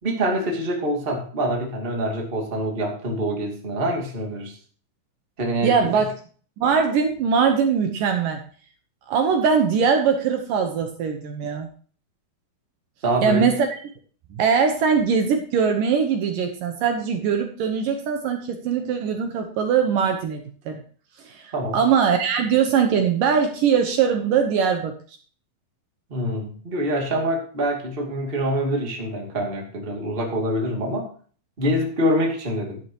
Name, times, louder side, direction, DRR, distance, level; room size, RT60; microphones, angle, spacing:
voice 1, 0.0-4.6 5.4-6.0 13.0-13.5 21.5-21.8 26.1-31.1 31.6-32.8, equal, 20° right, 1 dB, 1.9 m, -25 dB
voice 2, 5.6-6.1 6.6-8.4 9.1-11.7 13.2-13.7 14.3-20.8 21.3-24.9, right 6 dB, 70° right, 5 dB, 2.5 m, -21 dB
11.5 x 11.0 x 3.0 m, 0.42 s
omnidirectional pair, 4.4 m